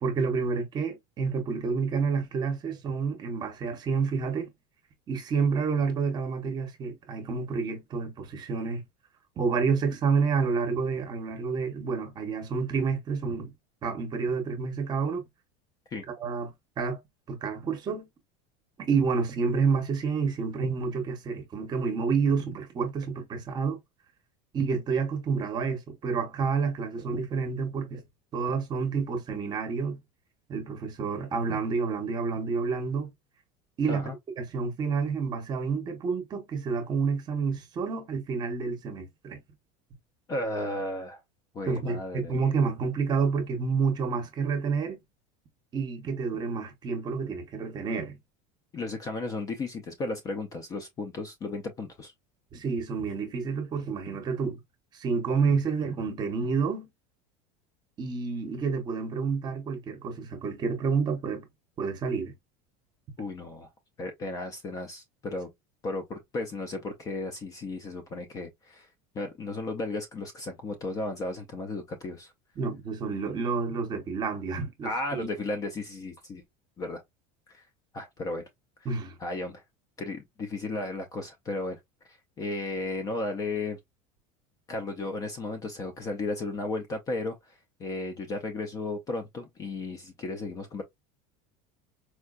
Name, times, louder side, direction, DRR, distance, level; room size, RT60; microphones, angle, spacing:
voice 1, 0.0-4.5 5.1-8.8 9.4-13.5 13.8-15.2 16.2-16.5 16.8-17.0 17.3-18.1 18.8-23.8 24.5-28.0 28.3-30.0 30.5-33.1 33.8-34.1 34.4-39.4 41.6-45.0 45.7-48.2 52.5-54.6 54.9-56.9 58.0-61.5 61.8-62.3 72.6-75.3 78.8-79.1, right 5 dB, 25° right, 0.8 m, -29 dB
voice 2, 40.3-41.2 41.5-42.3 48.7-52.1 63.2-63.7 64.0-65.5 65.8-68.9 69.1-72.3 74.8-76.4 76.8-77.0 77.5-77.6 77.9-78.4 78.8-78.9 79.2-79.6 80.0-81.8 82.4-83.8 84.7-87.5 87.8-90.8, left 2 dB, 20° left, 0.4 m, -34 dB
4.5 x 2.2 x 2.3 m
cardioid pair, 170°, 17 cm